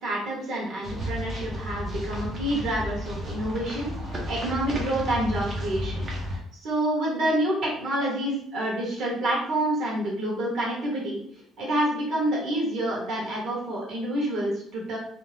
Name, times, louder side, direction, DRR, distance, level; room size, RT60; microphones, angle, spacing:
voice 1, 0.0-11.2 11.6-15.0, right 1 dB, 55° right, -4 dB, 1.2 m, -28 dB
sound 1, 0.8-6.4, equal, 30° right, 0.6 m, -33 dB
2.7 x 2.1 x 3.1 m, 0.66 s
cardioid pair, 155°, 0 cm